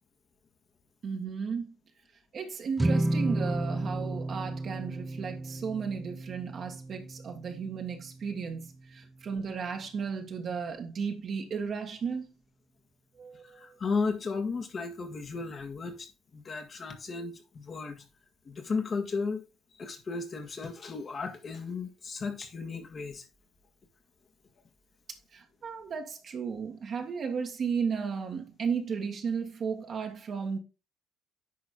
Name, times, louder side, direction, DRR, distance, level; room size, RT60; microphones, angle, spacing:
voice 1, 1.0-1.7 2.3-12.3 13.2-13.7 25.3-30.6, right 6 dB, 55° right, 1.7 m, -34 dB
sound 1, 2.8-9.2, right 1 dB, 15° right, 0.4 m, -33 dB
voice 2, 13.4-16.1 16.3-18.0 18.5-19.4 19.7-23.2, left 4 dB, 45° left, 1.8 m, -34 dB
10.0 x 4.1 x 3.8 m
supercardioid pair, 70°, 0 cm